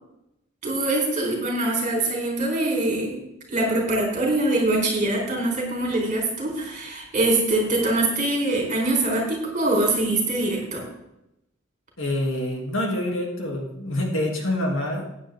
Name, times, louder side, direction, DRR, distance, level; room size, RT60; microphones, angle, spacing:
voice 1, 0.6-3.2 3.5-10.8, right 2 dB, 35° right, 0 dB, 4.2 m, -23 dB
voice 2, 12.0-15.0, left 1 dB, 70° left, 1 dB, 2.7 m, -26 dB
15.5 x 9.7 x 3.7 m, 0.84 s
head